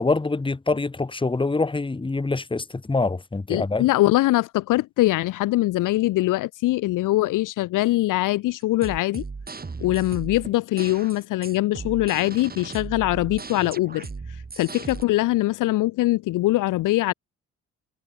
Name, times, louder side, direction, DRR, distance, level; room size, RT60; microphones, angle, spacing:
voice 1, 0.0-3.9, left 3 dB, 15° left, 1.3 m, -25 dB
voice 2, 3.5-9.2 9.8-14.1 14.6-17.1, left 17 dB, 65° left, 0.7 m, -22 dB
sound 1, 8.6-15.0, right 4 dB, 25° right, 2.6 m, -37 dB
supercardioid pair, 60°, 34 cm